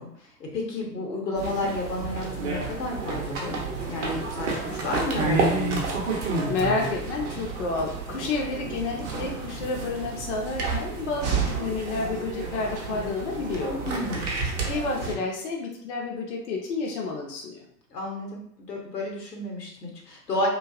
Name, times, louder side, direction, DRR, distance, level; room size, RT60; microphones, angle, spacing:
voice 1, 0.0-3.6 3.9-5.9 13.8-14.3 17.9-18.4 18.7-20.5, left 1 dB, 75° left, -1 dB, 0.9 m, -31 dB
sound 1, 1.3-15.1, right 3 dB, 45° right, 0.7 m, -30 dB
voice 2, 6.5-13.8 14.6-17.6, left 3 dB, 45° left, -1 dB, 0.5 m, -30 dB
2.5 x 2.3 x 2.3 m, 0.71 s
figure-of-eight pair, 100°, 50 cm